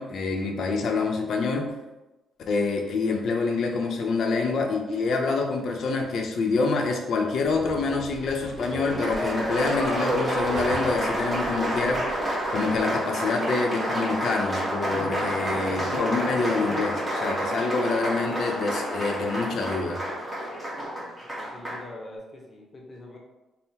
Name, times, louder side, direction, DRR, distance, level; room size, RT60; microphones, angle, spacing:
voice 1, 0.0-1.7 2.5-12.1 12.5-20.0, left 4 dB, 55° left, 3 dB, 0.6 m, -26 dB
Giggle, 3.4-4.0 4.8-5.3 6.0-6.1 6.4-7.2 8.4-9.0 10.2-10.8 12.1-12.6 14.0-14.1, right 2 dB, 25° right, 1.2 m, -47 dB
sound 1, 7.4-13.0, right 3 dB, 60° right, 1.0 m, -43 dB
Applause, 8.6-21.9, equal, 10° right, 0.9 m, -29 dB
voice 2, 21.5-23.2, left 1 dB, 20° left, -1 dB, 0.8 m, -43 dB
3.6 x 2.0 x 4.3 m, 1.0 s
cardioid pair, 140°, 0 cm